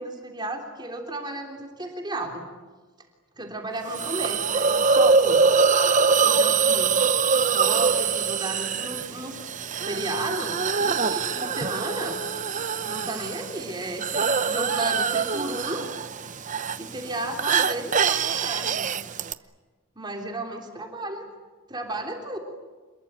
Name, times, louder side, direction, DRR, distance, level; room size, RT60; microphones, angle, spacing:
voice 1, 0.0-2.5 3.4-5.5 6.2-7.0 7.4-9.4 9.8-12.2 12.8-15.9 16.8-18.9 20.0-21.3 21.7-22.4, right 2 dB, 20° right, 2 dB, 3.4 m, -33 dB
Hiss, 3.9-19.3, right 5 dB, 35° right, 0.8 m, -24 dB
28.0 x 22.0 x 9.0 m, 1.3 s
head